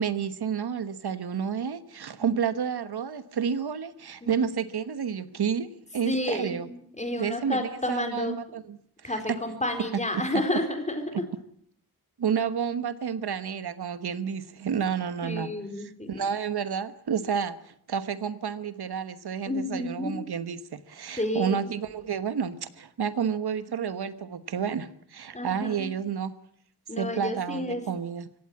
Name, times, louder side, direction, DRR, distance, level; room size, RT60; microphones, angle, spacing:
voice 1, 0.0-6.7 7.2-9.4 12.2-15.5 15.8-26.3 27.0-28.3, right 7 dB, 75° right, 13 dB, 1.2 m, -30 dB
voice 2, 6.1-8.4 9.0-11.3 15.2-16.2 19.4-20.3 21.2-21.7 25.3-25.9 26.9-27.8, left 1 dB, 20° left, 6 dB, 4.2 m, -31 dB
25.5 x 16.5 x 8.6 m, 0.66 s
wide cardioid pair, 150°, 39 cm